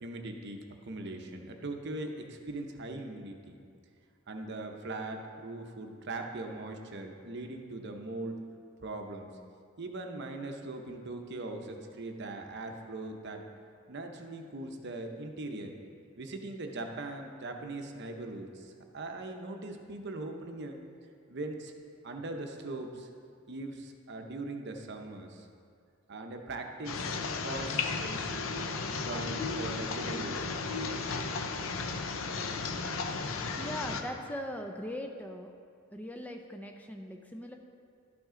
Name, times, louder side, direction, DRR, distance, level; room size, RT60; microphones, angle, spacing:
voice 1, 0.0-3.6 4.3-8.4 8.8-9.4 9.8-13.4 13.9-15.8 16.2-20.8 21.3-21.7 22.0-23.1 23.5-25.5 26.1-27.2 27.4-28.3 28.8-30.6, right 2 dB, 55° right, 4 dB, 0.8 m, -40 dB
sound 1, 26.8-34.0, left 4 dB, 70° left, 0.6 m, -34 dB
voice 2, 33.6-35.5 35.9-37.6, equal, 5° left, 3 dB, 0.4 m, -40 dB
12.5 x 6.0 x 3.8 m, 2.3 s
head